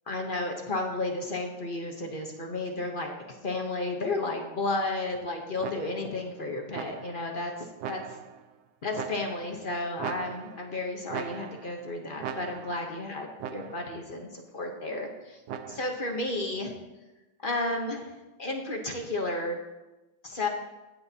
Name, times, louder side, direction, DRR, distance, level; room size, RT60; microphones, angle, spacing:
voice 1, 0.1-8.0 8.8-15.4 15.7-16.7 17.4-18.1 18.4-19.6 20.2-20.5, left 2 dB, 50° left, 2 dB, 0.6 m, -32 dB
sound 1, 5.6-6.2 6.7-7.3 7.8-8.5 8.9-9.6 10.0-10.7 11.1-11.8 12.2-12.9 13.4-14.0 15.5-16.1, right 8 dB, 80° right, 0.9 m, -39 dB
16.0 x 7.6 x 2.8 m, 1.1 s
omnidirectional pair, 2.3 m